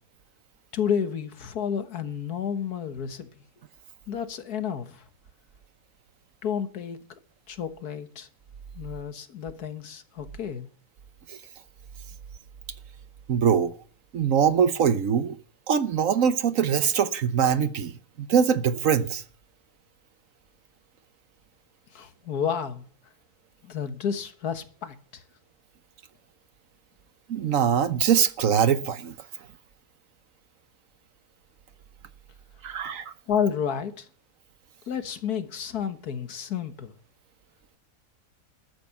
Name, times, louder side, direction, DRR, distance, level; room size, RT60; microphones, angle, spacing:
voice 1, 0.7-3.3 4.1-5.1 6.4-7.0 7.5-8.3 8.8-10.7 21.9-22.9 23.6-25.2 33.3-34.1 34.9-37.0, left 7 dB, 75° left, 1.9 m, -31 dB
voice 2, 13.3-13.7 14.1-15.4 15.7-17.9 18.2-19.2 27.3-29.1 32.6-33.1, right 7 dB, 60° right, 1.2 m, -23 dB
13.5 x 10.0 x 7.2 m
omnidirectional pair, 1.7 m